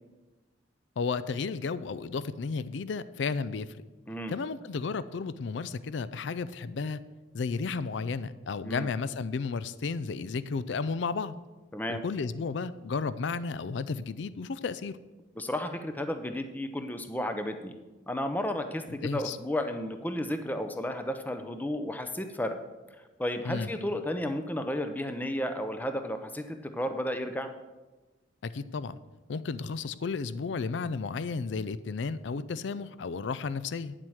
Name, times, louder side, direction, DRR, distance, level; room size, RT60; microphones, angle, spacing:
voice 1, 1.0-3.7 4.3-7.0 7.3-11.3 11.9-15.0 18.9-19.4 23.4-23.7 28.4-29.0 29.3-33.9, left 4 dB, 65° left, 15 dB, 0.4 m, -33 dB
voice 2, 11.7-12.0 15.4-17.8 18.1-22.6 23.2-27.5, left 1 dB, 10° left, 7 dB, 0.6 m, -33 dB
9.7 x 7.5 x 6.3 m, 1.2 s
head